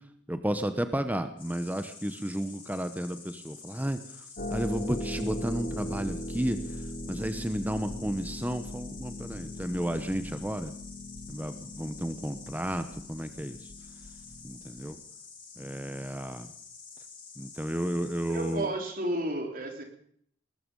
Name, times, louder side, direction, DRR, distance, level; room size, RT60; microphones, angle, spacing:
voice 1, 0.3-4.0 4.5-6.6 7.1-10.7 11.3-13.6 14.4-15.0 15.6-16.5 17.4-18.7, equal, 10° right, 9 dB, 1.0 m, -32 dB
Insect, 1.4-18.5, left 5 dB, 30° left, 7.6 m, -49 dB
Harp, 4.4-14.9, left 1 dB, 50° left, 3.1 m, -39 dB
voice 2, 18.3-19.8, right 1 dB, 50° right, 4 dB, 3.6 m, -32 dB
19.5 x 13.5 x 5.4 m, 0.63 s
head